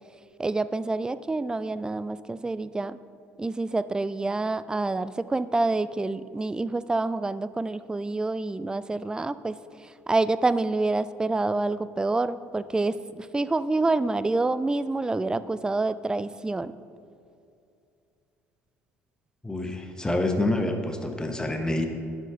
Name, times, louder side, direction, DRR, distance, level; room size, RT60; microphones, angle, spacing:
voice 1, 0.4-3.0 3.4-16.7, right 2 dB, 10° right, 16 dB, 0.3 m, -27 dB
voice 2, 19.4-21.9, left 1 dB, 10° left, 5 dB, 1.1 m, -27 dB
11.0 x 5.3 x 5.0 m, 2.6 s
figure-of-eight pair, 60°, 8 cm